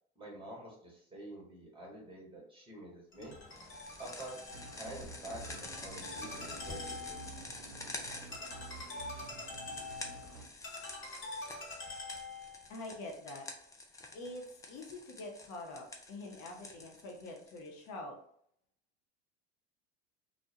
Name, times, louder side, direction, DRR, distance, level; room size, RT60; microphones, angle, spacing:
voice 1, 0.2-3.3 4.0-4.3 4.7-6.8, right 1 dB, 15° right, -3 dB, 1.1 m, -47 dB
Ringtone, 3.1-12.7, left 3 dB, 35° left, 1.2 m, -46 dB
sound 1, 3.5-17.9, left 2 dB, 10° left, 0.3 m, -49 dB
sound 2, 4.5-10.4, right 4 dB, 50° right, 0.6 m, -50 dB
voice 2, 12.7-13.5 14.1-18.2, left 2 dB, 55° left, 1 dB, 0.7 m, -45 dB
2.3 x 2.1 x 2.7 m, 0.65 s
hypercardioid pair, 85°, 33 cm